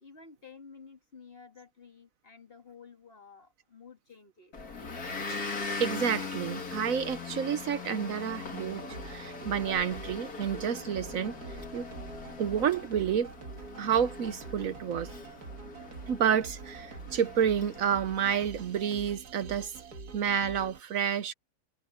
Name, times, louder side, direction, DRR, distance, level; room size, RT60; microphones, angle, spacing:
voice 1, 0.0-4.5, left 5 dB, 40° left, 2.1 m, -52 dB
Motor vehicle (road) / Engine, 4.5-18.7, left 4 dB, 70° left, 2.8 m, -41 dB
voice 2, 5.8-11.4 11.7-11.9 12.4-13.3 13.8-15.1 16.1-19.8 20.1-21.3, right 8 dB, 65° right, 1.2 m, -29 dB
sound 1, 8.6-20.8, right 4 dB, 85° right, 2.2 m, -45 dB
omnidirectional pair, 1.6 m